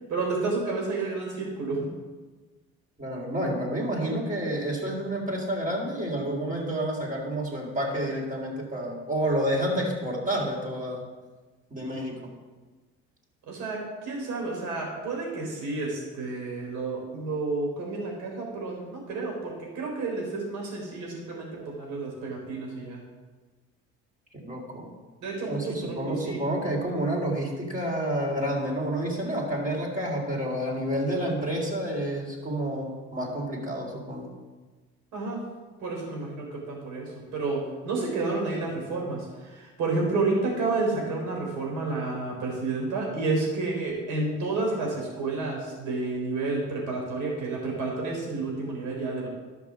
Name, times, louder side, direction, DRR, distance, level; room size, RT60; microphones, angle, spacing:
voice 1, 0.1-1.9 13.5-23.0 25.2-26.0 26.2-26.4 35.1-35.4 35.8-49.3, right 3 dB, 70° right, -1 dB, 4.0 m, -30 dB
voice 2, 3.0-11.1 11.7-12.3 24.3-24.9 25.5-34.3, right 1 dB, 25° right, -2 dB, 3.7 m, -29 dB
12.0 x 6.0 x 6.1 m, 1.3 s
supercardioid pair, 70°, 30 cm